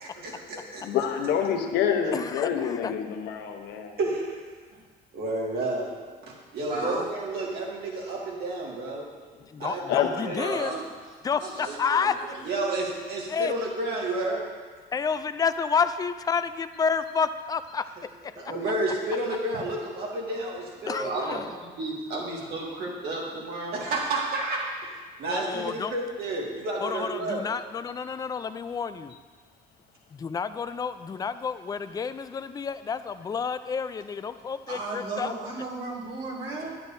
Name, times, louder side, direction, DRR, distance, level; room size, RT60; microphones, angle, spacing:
voice 1, 0.0-0.8 4.0-4.4 5.1-5.9 6.2-9.0 9.6-10.4 12.5-14.4 18.5-21.4 23.7-24.6 25.2-27.4, right 2 dB, 65° right, -3 dB, 2.0 m, -30 dB
voice 2, 0.8-4.0 9.9-10.6, left 8 dB, 80° left, 5 dB, 0.9 m, -27 dB
voice 3, 2.1-2.9 9.5-10.7 11.2-12.2 13.3-13.5 14.3-14.4 14.9-17.8 18.2-18.4 20.9-21.5 25.2-25.9 26.8-29.1 30.1-35.3, left 6 dB, 20° left, 11 dB, 0.3 m, -30 dB
voice 4, 6.6-7.0 10.4-10.9 11.4-12.5 18.3-18.5 20.8-23.9 25.5-25.6 34.7-36.8, right 2 dB, 85° right, -5 dB, 2.4 m, -35 dB
10.5 x 8.1 x 2.7 m, 1.5 s
cardioid pair, 110°, 17 cm